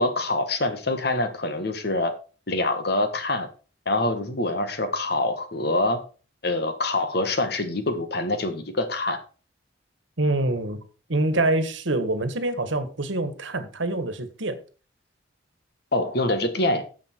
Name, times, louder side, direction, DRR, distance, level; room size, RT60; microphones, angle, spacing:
voice 1, 0.0-2.1 2.5-3.5 3.8-6.0 6.4-9.2 15.9-16.8, left 2 dB, 55° left, 1.5 m, -25 dB
voice 2, 10.2-10.8 11.1-14.6, right 2 dB, 80° right, 1.4 m, -25 dB
9.6 x 7.2 x 4.5 m
head